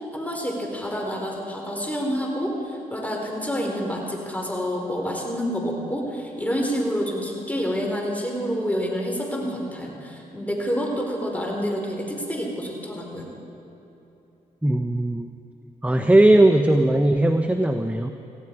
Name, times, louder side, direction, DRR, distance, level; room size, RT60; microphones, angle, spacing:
voice 1, 0.1-13.3, equal, 10° left, 0 dB, 4.5 m, -28 dB
voice 2, 14.6-15.3 15.8-18.1, right 1 dB, 10° right, 7 dB, 0.9 m, -18 dB
18.5 x 15.5 x 4.8 m, 3.0 s
supercardioid pair, 50°, 17 cm